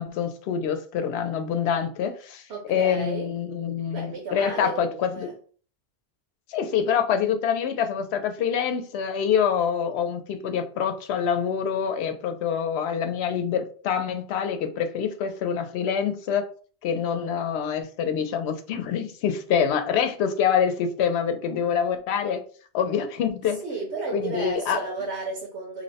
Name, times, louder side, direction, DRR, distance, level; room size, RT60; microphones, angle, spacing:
voice 1, 0.0-5.3 6.5-16.5 16.8-22.4 22.7-23.6 24.1-24.8, left 7 dB, 80° left, 0.8 m, -26 dB
voice 2, 2.5-3.3 3.9-5.4 23.5-25.8, right 3 dB, 85° right, 1.1 m, -33 dB
2.8 x 2.1 x 4.0 m
omnidirectional pair, 1.1 m